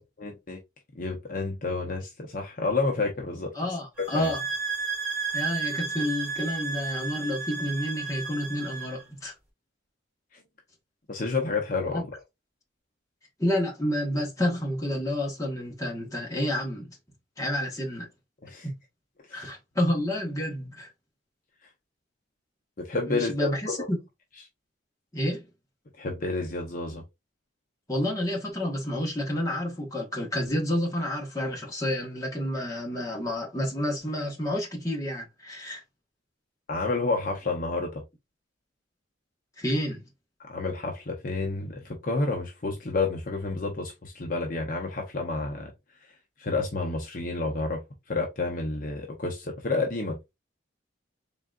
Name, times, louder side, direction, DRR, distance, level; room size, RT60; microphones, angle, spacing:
voice 1, 0.2-0.6 0.9-3.5 4.1-4.3 10.3-10.4 11.1-12.0 18.4-18.7 19.3-19.5 22.8-23.9 26.0-27.0 36.7-38.0 40.5-45.7 46.4-47.8 48.1-50.2, left 3 dB, 45° left, 0.7 m, -30 dB
voice 2, 3.5-4.4 5.3-9.3 11.9-12.0 13.4-17.0 17.4-18.1 18.6-18.7 19.3-20.9 23.1-24.0 25.1-25.5 27.9-35.8 39.6-40.0, left 1 dB, 15° left, 1.2 m, -29 dB
sound 1, 4.0-9.0, right 5 dB, 10° right, 2.6 m, -33 dB
3.9 x 3.7 x 2.4 m
head